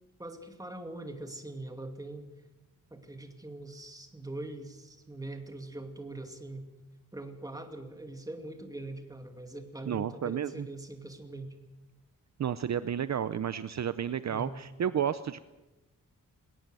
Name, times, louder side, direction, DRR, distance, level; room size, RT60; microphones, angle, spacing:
voice 1, 0.2-2.3 2.9-6.7 7.1-11.5 14.3-14.6, right 2 dB, 10° right, 5 dB, 2.4 m, -42 dB
voice 2, 9.9-10.7 12.4-15.4, right 9 dB, 55° right, 14 dB, 0.6 m, -31 dB
20.5 x 18.5 x 7.7 m, 1.1 s
wide cardioid pair, 145°, 32 cm